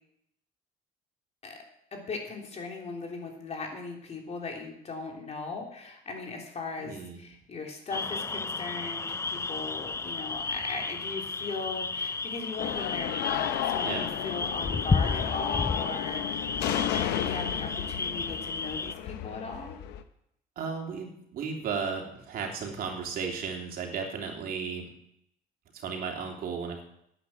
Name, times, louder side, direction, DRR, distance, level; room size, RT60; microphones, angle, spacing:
voice 1, 1.9-16.6 16.9-19.8, left 4 dB, 40° left, 1 dB, 3.4 m, -38 dB
voice 2, 6.8-7.2 13.8-14.1 20.5-24.9 25.7-26.8, right 5 dB, 60° right, 1 dB, 3.2 m, -34 dB
sound 1, 7.9-18.9, left 4 dB, 15° left, 0.4 m, -32 dB
sound 2, 12.6-20.0, left 11 dB, 90° left, 1.0 m, -33 dB
11.0 x 9.0 x 7.6 m, 0.75 s
cardioid pair, 110°, 17 cm